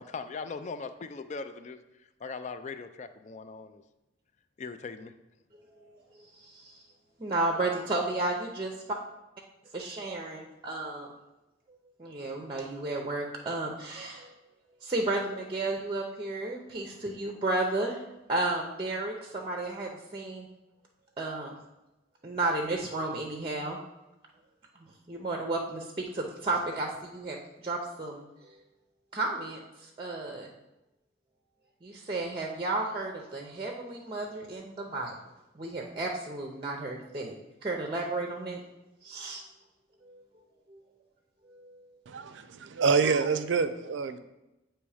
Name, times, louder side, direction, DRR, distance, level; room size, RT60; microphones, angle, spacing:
voice 1, 0.0-3.8 4.6-5.1, left 4 dB, 40° left, 10 dB, 0.4 m, -40 dB
voice 2, 5.7-6.1 6.3-6.8 7.2-8.7 9.7-11.1 12.0-14.3 14.8-18.0 18.3-20.5 21.2-21.5 22.2-23.8 24.8-27.4 27.6-28.6 29.1-30.5 31.8-35.1 35.5-37.3 37.6-38.6 39.0-39.4 40.0-40.2 40.7-40.8 41.4-41.9, right 2 dB, 30° right, 1 dB, 0.6 m, -33 dB
voice 3, 42.1-44.2, right 5 dB, 85° right, 10 dB, 0.5 m, -27 dB
8.3 x 3.0 x 4.8 m, 0.97 s
head